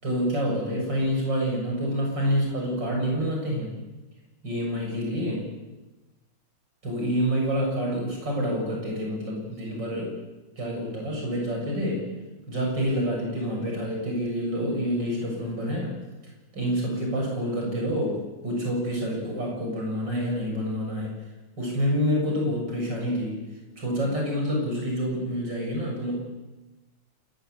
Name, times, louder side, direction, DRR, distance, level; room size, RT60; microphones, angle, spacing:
voice 1, 0.0-3.7 4.4-5.5 6.8-10.2 10.6-12.1 12.5-16.0 16.5-21.1 21.6-23.4 23.8-26.2, equal, 60° right, -1 dB, 7.7 m, -27 dB
28.0 x 15.0 x 9.4 m, 1.1 s
omnidirectional pair, 2.2 m